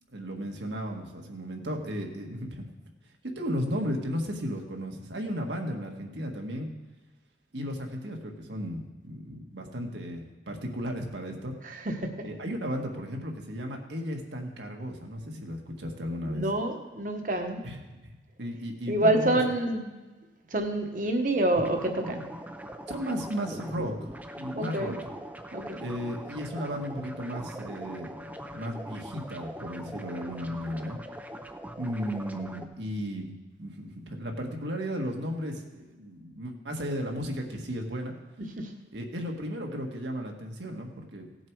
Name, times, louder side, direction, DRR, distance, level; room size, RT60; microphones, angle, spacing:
voice 1, 0.1-2.7 3.4-6.7 7.5-11.5 12.2-16.5 17.6-19.4 22.9-23.9 24.4-25.1 25.8-31.0 31.8-38.1 38.9-41.3, equal, 75° right, 2 dB, 1.7 m, -35 dB
voice 2, 16.3-17.6 18.9-19.9 20.5-22.2 24.5-24.9 25.5-25.8, right 1 dB, 45° right, 5 dB, 1.2 m, -27 dB
sound 1, 21.5-32.6, equal, 10° right, 0.6 m, -41 dB
17.0 x 7.3 x 4.7 m, 1.2 s
head